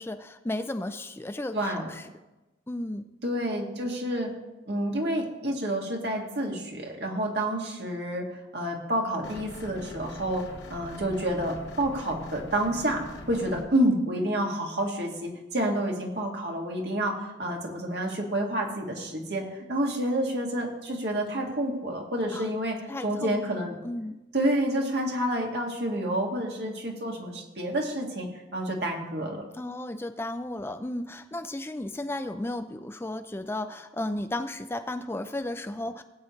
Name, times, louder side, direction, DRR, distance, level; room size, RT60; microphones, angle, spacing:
voice 1, 0.0-2.1 2.7-3.1 22.3-22.5 22.9-23.4 23.8-24.2 29.5-36.0, left 1 dB, 15° left, 9 dB, 0.4 m, -34 dB
voice 2, 1.5-1.9 3.2-4.3 4.7-8.2 8.5-10.4 10.7-13.0 13.3-22.8 23.0-23.8 24.3-29.4, right 1 dB, 65° right, 0 dB, 2.2 m, -29 dB
sound 1, 9.2-13.6, left 1 dB, 85° left, 1.8 m, -43 dB
19.0 x 8.6 x 3.2 m, 1.1 s
head